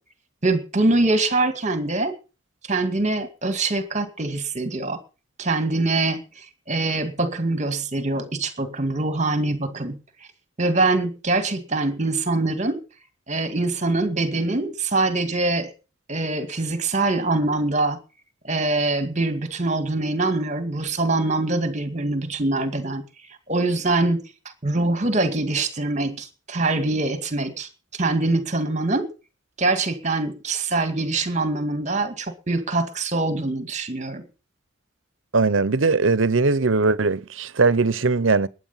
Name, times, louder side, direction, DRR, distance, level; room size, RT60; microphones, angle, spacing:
voice 1, 0.4-2.1 2.7-5.0 5.4-10.0 10.6-12.8 13.3-15.7 16.1-18.0 18.4-23.0 23.5-24.2 24.6-29.1 29.6-34.2, right 2 dB, 35° right, 2.2 m, -24 dB
voice 2, 35.3-38.5, right 3 dB, 80° right, 0.9 m, -20 dB
21.0 x 9.8 x 5.7 m
head